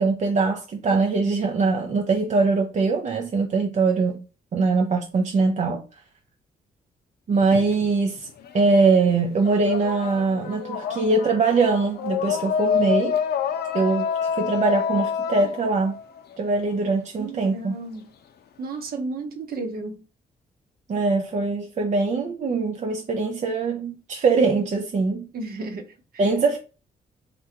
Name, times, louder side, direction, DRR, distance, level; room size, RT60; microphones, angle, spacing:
voice 1, 0.0-4.2 4.5-5.8 7.3-8.3 8.5-13.2 13.7-15.9 16.4-17.7 20.9-25.3 26.2-26.6, right 4 dB, 45° right, 0.5 m, -22 dB
sound 1, 7.4-8.7 9.0-16.8, left 7 dB, 70° left, 0.5 m, -27 dB
voice 2, 17.2-18.1 18.6-20.0 25.3-26.3, right 3 dB, 60° right, 0.9 m, -33 dB
3.6 x 2.2 x 2.9 m
cardioid pair, 70°, 17 cm